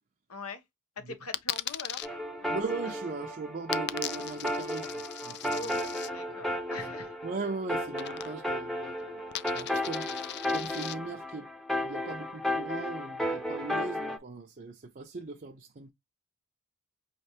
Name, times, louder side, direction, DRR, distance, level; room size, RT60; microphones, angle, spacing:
voice 1, 0.3-0.6 1.0-2.1 2.4-2.6 5.5-7.1, left 3 dB, 85° left, 1.1 m, -43 dB
Coin (dropping), 1.3-2.1 3.7-6.1 8.0-8.6 8.9-10.9, left 13 dB, 50° left, 0.3 m, -38 dB
sound 1, 2.0-14.2, left 1 dB, ahead, 0.7 m, -34 dB
voice 2, 2.5-5.7 7.2-11.5 11.8-15.9, right 3 dB, 40° right, 0.5 m, -39 dB
5.6 x 3.3 x 2.8 m
head